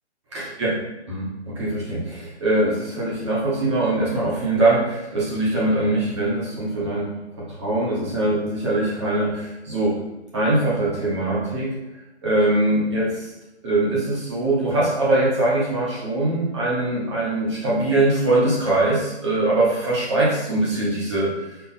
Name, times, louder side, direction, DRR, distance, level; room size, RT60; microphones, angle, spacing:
voice 1, 0.3-0.7 1.1-7.1 7.3-9.9 10.3-11.8 12.2-13.3 13.6-21.3, right 2 dB, 25° right, -6 dB, 1.0 m, -22 dB
4.5 x 2.3 x 4.1 m, 0.99 s
hypercardioid pair, 150°, 34 cm